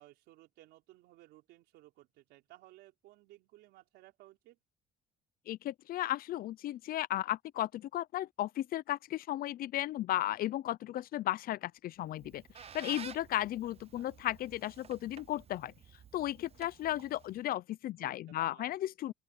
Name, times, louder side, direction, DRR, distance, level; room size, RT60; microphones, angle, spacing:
voice 1, 0.0-4.6 13.9-14.1 18.0-18.8, right 17 dB, 85° right, 4.5 m, -58 dB
voice 2, 5.5-12.4 12.7-15.7 16.1-19.1, left 14 dB, 60° left, 0.6 m, -35 dB
Squeak, 12.0-17.5, right 7 dB, 35° right, 0.8 m, -52 dB
open air
cardioid pair, 110°, 17 cm